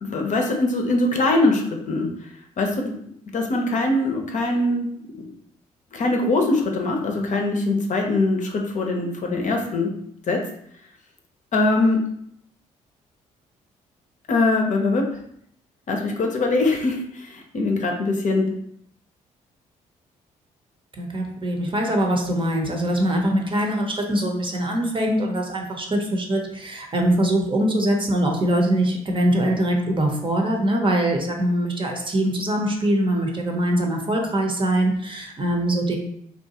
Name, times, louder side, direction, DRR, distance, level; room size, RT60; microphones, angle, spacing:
voice 1, 0.0-2.1 2.6-3.0 3.3-4.9 5.9-9.9 10.3-10.4 11.5-12.1 14.3-15.0 15.9-18.5, left 2 dB, 50° left, 2 dB, 0.6 m, -22 dB
voice 2, 21.0-35.9, right 1 dB, 30° right, 1 dB, 0.7 m, -22 dB
2.7 x 2.2 x 2.8 m, 0.70 s
hypercardioid pair, 50°, 17 cm